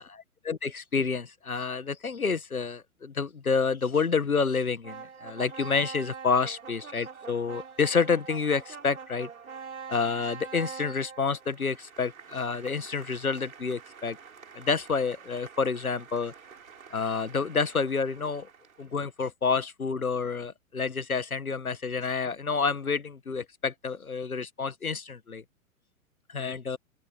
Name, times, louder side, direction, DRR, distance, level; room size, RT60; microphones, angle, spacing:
voice 1, 0.4-9.3 9.9-14.2 14.5-16.3 16.9-18.5 18.8-25.4 26.3-26.8, left 5 dB, 85° left, 1.6 m, -29 dB
sound 1, 4.8-19.0, right 6 dB, 70° right, 5.5 m, -45 dB
open air
figure-of-eight pair, 110°, 42 cm